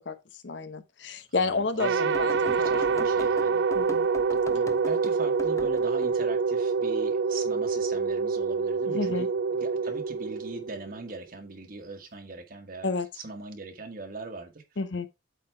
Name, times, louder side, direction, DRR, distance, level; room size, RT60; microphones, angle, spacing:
voice 1, 0.4-3.0 3.7-4.1 8.9-9.3 12.8-13.1 14.8-15.1, left 4 dB, 85° left, 0.9 m, -31 dB
voice 2, 1.3-3.7 4.5-12.9 13.1-14.6, right 3 dB, 50° right, 1.4 m, -41 dB
sound 1, 1.8-11.1, right 5 dB, 70° right, 0.4 m, -26 dB
sound 2, 2.1-6.1 9.6-9.9 11.1-11.2, left 1 dB, 15° left, 0.6 m, -41 dB
8.3 x 3.9 x 4.5 m
head